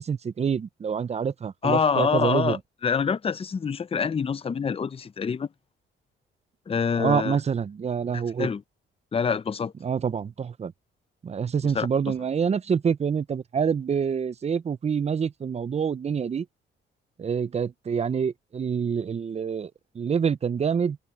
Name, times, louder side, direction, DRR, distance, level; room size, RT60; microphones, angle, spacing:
voice 1, 0.0-2.6 7.0-8.5 9.8-10.7 11.2-16.5 17.2-21.0, right 6 dB, 35° right, 0.6 m, -26 dB
voice 2, 1.6-5.5 6.7-7.4 8.1-8.6 9.1-9.7 11.7-11.9, left 6 dB, 30° left, 0.7 m, -26 dB
cardioid pair, 90°, 20 cm